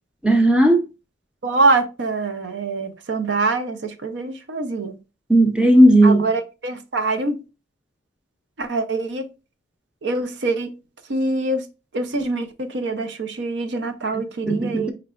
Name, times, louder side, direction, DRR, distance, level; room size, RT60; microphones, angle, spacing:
voice 1, 0.2-0.8 5.3-6.3 14.1-14.9, right 1 dB, 5° right, 0.5 m, -15 dB
voice 2, 1.4-5.0 6.0-7.3 8.6-9.3 10.0-10.7 11.1-11.7 11.9-14.9, right 3 dB, 65° right, 0.6 m, -24 dB
4.8 x 3.3 x 2.4 m
head